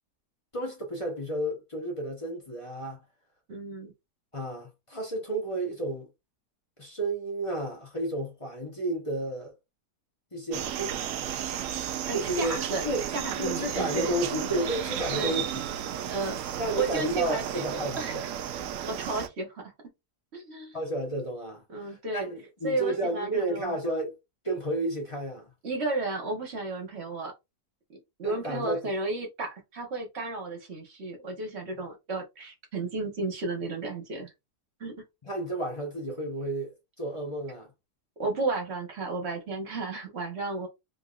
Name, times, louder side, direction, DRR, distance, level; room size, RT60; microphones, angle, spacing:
voice 1, 0.5-3.0 4.3-6.1 6.8-9.5 10.3-11.0 12.1-12.5 12.8-15.4 16.6-18.0 20.7-24.2 24.4-25.5 28.2-29.0 31.7-31.8 35.2-37.7, right 1 dB, 20° left, 1.0 m, -32 dB
voice 2, 3.5-3.9 12.0-12.8 13.1-14.1 15.2-15.3 16.1-16.4 16.7-17.7 18.0-18.3 18.9-19.7 20.3-20.8 21.7-22.3 22.6-23.8 25.6-27.3 28.2-34.3 34.8-34.9 38.2-40.7, right 3 dB, 45° right, 1.2 m, -33 dB
sound 1, 10.5-19.3, right 9 dB, 70° right, 0.7 m, -33 dB
3.7 x 3.5 x 2.4 m
omnidirectional pair, 1.8 m